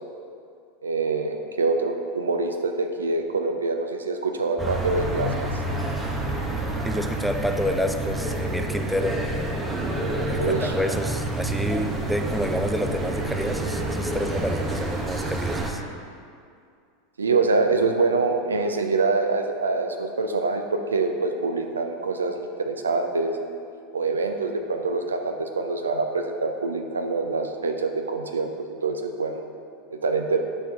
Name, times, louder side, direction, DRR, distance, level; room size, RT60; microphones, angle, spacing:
voice 1, 0.8-5.3 10.4-10.7 17.2-23.3 23.9-29.5 29.9-30.4, right 3 dB, 90° right, 5 dB, 0.5 m, -25 dB
sound 1, 4.6-15.7, right 2 dB, 15° right, 1.0 m, -28 dB
voice 2, 6.8-9.2 10.3-15.8, equal, ahead, 6 dB, 0.5 m, -28 dB
8.0 x 4.5 x 3.6 m, 2.3 s
hypercardioid pair, 90°, 0 cm